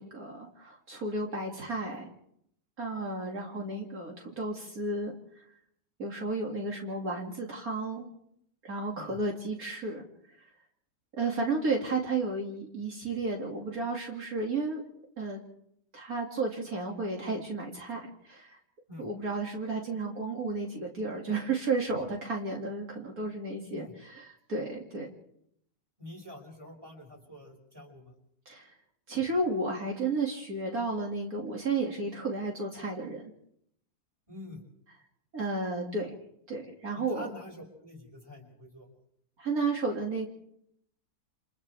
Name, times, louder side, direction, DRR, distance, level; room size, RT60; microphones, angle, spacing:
voice 1, 0.0-2.1 2.8-5.1 6.0-8.1 8.6-10.0 11.2-14.8 15.2-15.4 15.9-18.0 18.2-18.6 19.0-25.1 28.5-28.7 29.1-33.2 35.3-36.1 36.5-37.3 39.4-40.3, right 3 dB, 65° right, -1 dB, 2.9 m, -32 dB
voice 2, 26.0-28.1 34.3-34.6 36.9-38.9, left 2 dB, 15° right, 0 dB, 6.1 m, -46 dB
29.5 x 28.0 x 3.5 m, 0.73 s
omnidirectional pair, 1.7 m